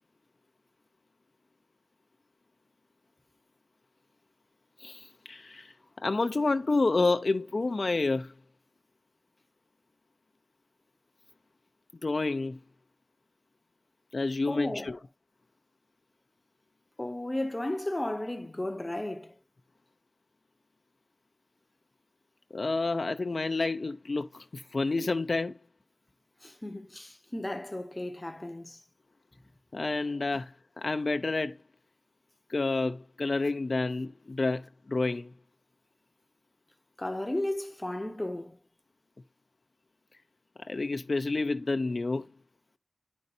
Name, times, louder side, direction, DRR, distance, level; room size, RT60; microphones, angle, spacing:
voice 1, 4.8-5.7 6.0-8.3 12.0-12.6 14.1-15.0 22.5-25.5 29.7-31.6 32.5-35.3 40.7-42.3, left 3 dB, 55° left, 0.5 m, -29 dB
voice 2, 14.5-15.0 17.0-19.4 26.4-28.8 37.0-38.6, left 1 dB, 20° left, 0.7 m, -34 dB
9.8 x 5.3 x 2.7 m
cardioid pair, 50°, 0 cm